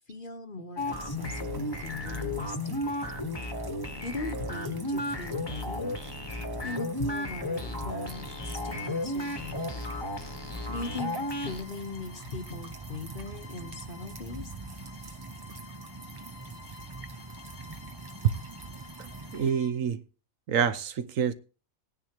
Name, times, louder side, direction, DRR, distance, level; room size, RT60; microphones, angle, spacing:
voice 1, 0.1-2.8 4.0-5.9 6.6-9.7 10.7-14.5, left 3 dB, 40° left, 1.1 m, -39 dB
sound 1, 0.8-11.6, left 1 dB, 20° left, 1.2 m, -34 dB
sound 2, 0.8-19.5, right 4 dB, 35° right, 0.3 m, -44 dB
Bowed string instrument, 8.0-19.8, left 6 dB, 60° left, 1.4 m, -52 dB
voice 2, 19.3-20.0 20.5-21.3, right 8 dB, 75° right, 1.1 m, -26 dB
18.5 x 9.7 x 2.9 m
omnidirectional pair, 1.4 m